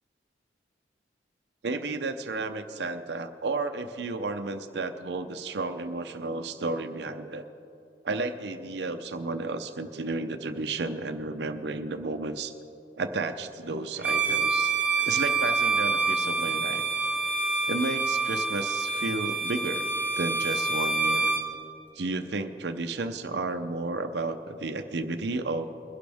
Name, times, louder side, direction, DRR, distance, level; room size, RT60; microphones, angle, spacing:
voice 1, 1.6-7.5 8.0-12.5 13.0-14.7 15.1-16.8 17.7-19.9 20.2-21.3 22.0-25.6, right 3 dB, 70° right, 8 dB, 0.6 m, -32 dB
Bowed string instrument, 14.0-21.5, right 3 dB, 10° right, 0.9 m, -27 dB
22.0 x 11.5 x 3.5 m, 3.0 s
head